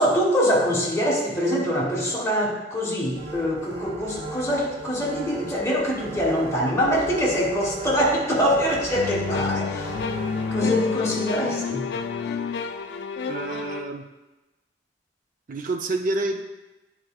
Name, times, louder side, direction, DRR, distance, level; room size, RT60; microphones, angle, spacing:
voice 1, 0.0-10.0 10.5-11.8, equal, 15° left, -4 dB, 1.3 m, -24 dB
sound 1, 3.1-10.6, right 2 dB, 70° right, 1.0 m, -38 dB
sound 2, 8.9-13.9, left 5 dB, 65° left, 0.3 m, -29 dB
voice 2, 13.3-14.0 15.5-16.4, right 2 dB, 50° right, 4 dB, 0.5 m, -28 dB
9.2 x 4.4 x 2.4 m, 1.1 s
head